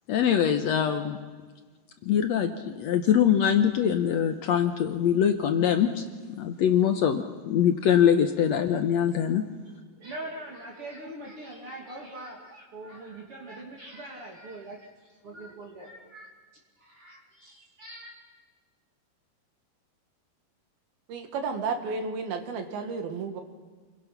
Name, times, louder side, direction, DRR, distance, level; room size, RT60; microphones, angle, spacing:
voice 1, 0.1-1.2 2.0-6.0 6.3-9.4, left 9 dB, 70° left, 7 dB, 1.6 m, -23 dB
voice 2, 10.0-16.3 16.8-18.1, right 1 dB, 40° right, 0 dB, 2.9 m, -42 dB
voice 3, 21.1-23.4, right 4 dB, 85° right, 6 dB, 3.7 m, -32 dB
29.0 x 22.5 x 5.9 m, 1.4 s
omnidirectional pair, 4.2 m